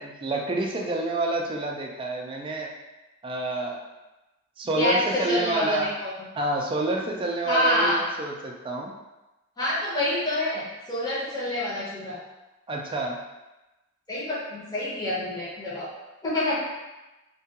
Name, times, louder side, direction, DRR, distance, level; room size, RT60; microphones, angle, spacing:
voice 1, 0.0-2.7 3.2-3.8 4.6-6.0 6.4-8.9 12.7-13.2, right 2 dB, 25° right, 0 dB, 0.3 m, -28 dB
voice 2, 4.8-6.1 7.4-8.0 9.6-12.2 14.1-15.9 16.2-16.5, left 1 dB, 20° left, -9 dB, 0.7 m, -27 dB
2.3 x 2.2 x 2.8 m, 1.0 s
head